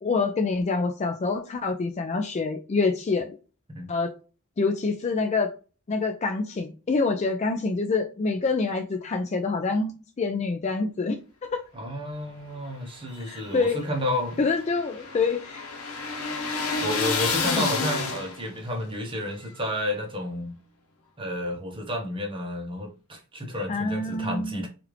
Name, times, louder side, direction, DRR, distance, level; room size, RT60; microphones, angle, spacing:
voice 1, 0.0-3.4 3.9-4.1 4.6-5.5 5.9-11.6 13.3-13.8 14.4-15.6 17.4-17.7 23.7-24.6, left 4 dB, 30° left, 0.3 m, -26 dB
voice 2, 11.7-14.4 16.8-20.5 21.2-24.7, left 1 dB, 25° right, 0.8 m, -31 dB
sound 1, 13.1-18.6, left 4 dB, 85° left, 0.8 m, -30 dB
3.2 x 2.4 x 3.1 m
head